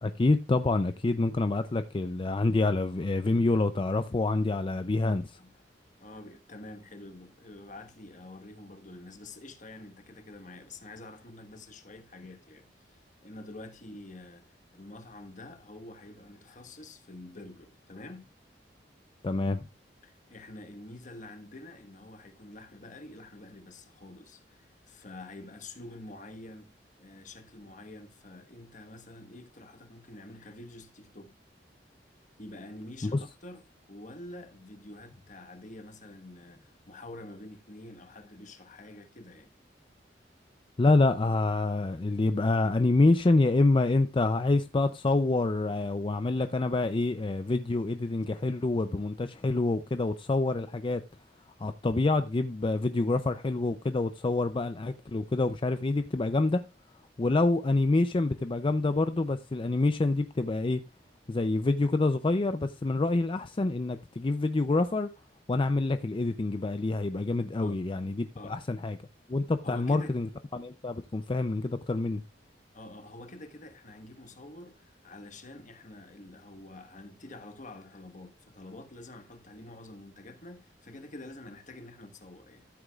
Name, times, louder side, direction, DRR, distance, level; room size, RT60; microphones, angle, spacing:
voice 1, 0.0-5.4 19.2-19.7 33.0-33.2 40.8-51.0 51.6-56.6 57.2-60.8 61.3-65.1 65.5-69.0 69.3-70.3 70.5-72.2, left 2 dB, 30° left, 0.5 m, -27 dB
voice 2, 6.0-18.3 20.0-31.3 32.4-39.5 67.6-67.8 68.3-68.6 69.6-70.2 72.7-82.7, left 2 dB, 45° left, 1.4 m, -47 dB
13.5 x 8.0 x 2.4 m
head